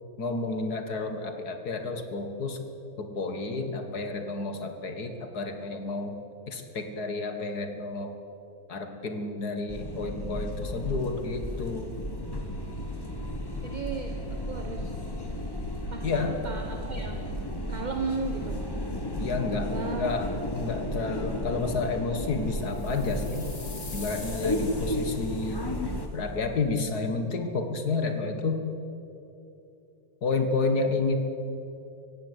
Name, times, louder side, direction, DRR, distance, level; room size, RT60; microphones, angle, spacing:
voice 1, 0.2-2.6 3.0-6.2 6.5-8.1 8.7-11.9 16.0-16.4 19.2-23.5 23.9-25.7 26.1-28.6 30.2-31.2, left 3 dB, 55° left, 6 dB, 2.1 m, -30 dB
sound 1, 9.7-26.1, left 1 dB, 15° left, 1.3 m, -33 dB
voice 2, 13.6-15.0 15.9-17.3 17.7-18.6 19.6-20.1, right 4 dB, 30° right, 3 dB, 1.1 m, -35 dB
sound 2, 22.6-25.8, left 3 dB, 80° left, 4.4 m, -45 dB
17.5 x 16.0 x 9.7 m, 2.8 s
omnidirectional pair, 2.1 m